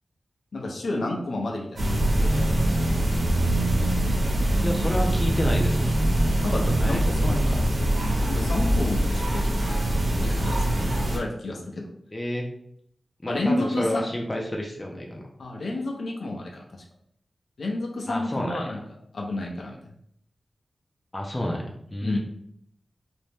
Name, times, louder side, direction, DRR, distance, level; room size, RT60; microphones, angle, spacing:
voice 1, 0.5-1.9 2.2-2.6 6.4-7.4 8.3-9.9 10.2-11.9 13.3-14.0 15.4-16.8 17.6-18.8 19.1-19.8 22.0-22.2, left 2 dB, 75° left, 0 dB, 0.6 m, -30 dB
sound 1, 1.8-11.2, right 1 dB, 75° right, 0.9 m, -23 dB
voice 2, 4.6-5.9 6.7-7.4 12.1-12.5 13.2-15.2 18.1-18.7 21.1-22.2, left 1 dB, 20° left, 0 dB, 0.4 m, -30 dB
2.6 x 2.1 x 3.2 m, 0.69 s
wide cardioid pair, 90°, 0 cm